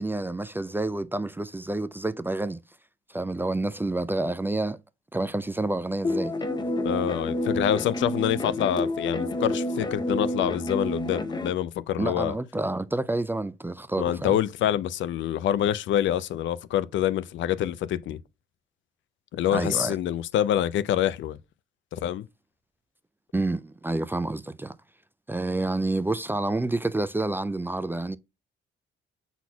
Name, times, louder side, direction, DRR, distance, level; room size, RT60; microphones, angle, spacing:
voice 1, 0.0-2.6 3.1-4.8 5.1-6.4 12.0-14.4 19.5-20.0 23.3-24.8 25.3-28.2, right 2 dB, 10° right, 0.3 m, -28 dB
sound 1, 6.0-11.5, left 1 dB, 20° left, 0.7 m, -29 dB
voice 2, 6.8-12.3 14.0-18.2 19.3-21.4 21.9-22.3, left 11 dB, 70° left, 0.5 m, -26 dB
5.9 x 4.1 x 2.2 m
cardioid pair, 90°, 20 cm